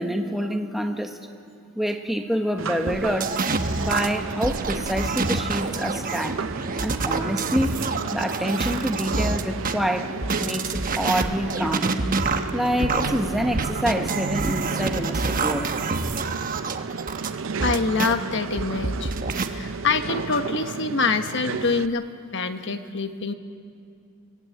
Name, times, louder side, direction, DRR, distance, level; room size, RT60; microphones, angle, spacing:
voice 1, 0.0-1.4 1.8-6.4 6.8-7.8 8.1-10.1 10.4-12.0 12.5-15.8, equal, ahead, 4 dB, 1.2 m, -27 dB
sound 1, 2.6-21.9, right 5 dB, 60° right, 0.5 m, -33 dB
sound 2, 2.9-9.7 10.2-18.1 18.6-19.5, right 3 dB, 40° right, 1.1 m, -27 dB
voice 2, 17.6-19.1 19.4-22.0 22.3-23.3, left 4 dB, 55° left, 8 dB, 1.2 m, -25 dB
23.5 x 18.5 x 9.0 m, 2.4 s
head